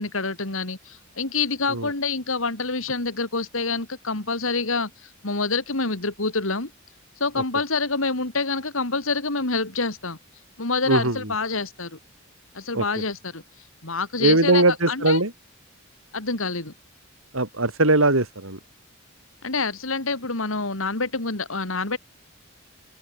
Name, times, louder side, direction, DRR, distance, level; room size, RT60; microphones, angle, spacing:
voice 1, 0.0-6.7 7.2-10.2 10.6-12.0 12.5-13.4 13.8-15.2 16.1-16.7 19.4-22.0, left 3 dB, 80° left, 3.3 m, -27 dB
voice 2, 10.9-11.3 12.7-12.8 14.2-15.3 17.3-18.6, right 2 dB, 85° right, 5.6 m, -20 dB
open air
head